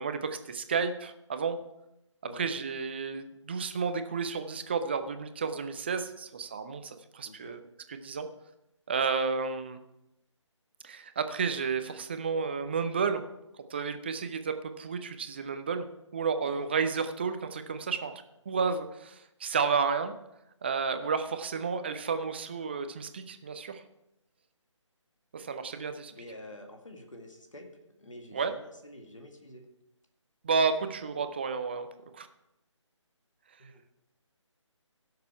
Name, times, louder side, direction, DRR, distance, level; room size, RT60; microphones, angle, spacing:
voice 1, 0.0-1.6 2.3-7.6 7.9-8.3 8.9-9.8 10.8-13.2 13.7-15.9 16.1-20.1 20.6-23.8 25.3-26.1 28.3-28.5 30.4-31.9 32.1-32.3, right 5 dB, 20° right, 9 dB, 0.5 m, -31 dB
voice 2, 7.2-7.6 16.4-16.6 26.1-27.7 28.0-29.6 33.6-33.8, left 1 dB, 80° left, 3 dB, 2.0 m, -48 dB
16.5 x 6.7 x 4.7 m, 0.87 s
figure-of-eight pair, 150°, 16 cm